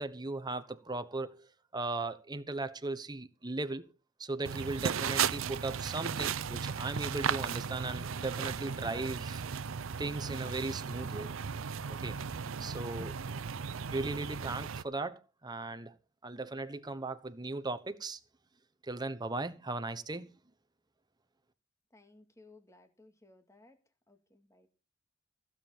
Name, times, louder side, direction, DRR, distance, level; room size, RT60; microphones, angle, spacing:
voice 1, 0.0-1.5 1.7-3.9 4.2-9.4 10.0-11.3 11.9-12.2 12.6-13.2 13.9-15.9 16.2-18.2 18.8-20.3, right 2 dB, 20° right, 1.0 m, -37 dB
sound 1, 4.4-14.8, right 7 dB, 85° right, 0.6 m, -36 dB
voice 2, 21.9-23.8 24.1-24.7, left 2 dB, 15° left, 2.2 m, -60 dB
15.5 x 7.4 x 7.1 m
head